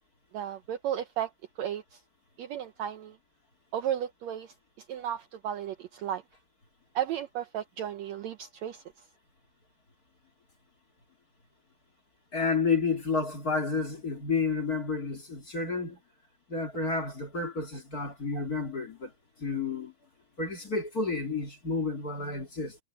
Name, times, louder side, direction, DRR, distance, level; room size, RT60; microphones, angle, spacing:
voice 1, 0.3-1.3 1.6-2.0 2.4-3.2 3.7-4.5 4.9-6.2 6.9-8.8 18.4-18.5, right 10 dB, 75° right, 1.7 m, -34 dB
voice 2, 12.3-16.0 16.5-19.1 19.4-19.9 20.4-22.8, left 4 dB, 30° left, 2.5 m, -30 dB
omnidirectional pair, 3.9 m